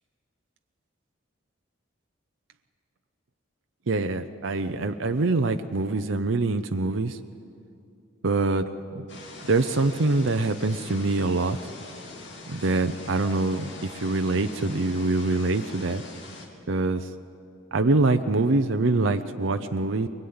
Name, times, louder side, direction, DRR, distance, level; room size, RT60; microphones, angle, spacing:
voice 1, 3.9-7.2 8.2-8.7 8.9-9.1 9.4-11.6 12.5-16.0 16.7-17.1 17.7-20.1, right 3 dB, 70° right, 7 dB, 0.7 m, -24 dB
sound 1, 9.1-16.5, left 3 dB, 60° left, 3.2 m, -43 dB
23.0 x 20.5 x 9.6 m, 2.6 s
head